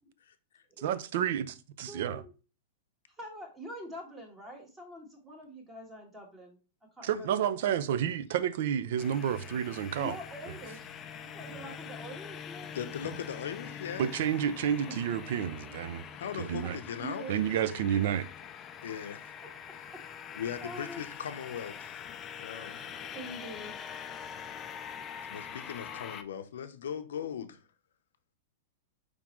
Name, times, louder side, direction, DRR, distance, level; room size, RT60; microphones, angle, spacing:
voice 1, 0.8-2.2 7.0-10.2 10.5-10.6 11.6-11.8 14.0-16.0 16.4-16.8 17.3-18.2, right 9 dB, 60° right, 0.4 m, -30 dB
voice 2, 1.9-2.3 3.2-6.6 7.0-7.7 10.0-12.8 16.6-18.1 18.9-19.0 20.2-21.1 23.0-23.7, equal, 15° right, 1.3 m, -45 dB
sound 1, 9.0-26.2, left 8 dB, 20° left, 0.3 m, -44 dB
voice 3, 12.7-14.1 16.2-17.3 18.8-19.3 20.3-22.0 22.3-22.8 25.3-27.6, left 8 dB, 90° left, 0.7 m, -39 dB
5.0 x 3.6 x 3.0 m
supercardioid pair, 155°, 0 cm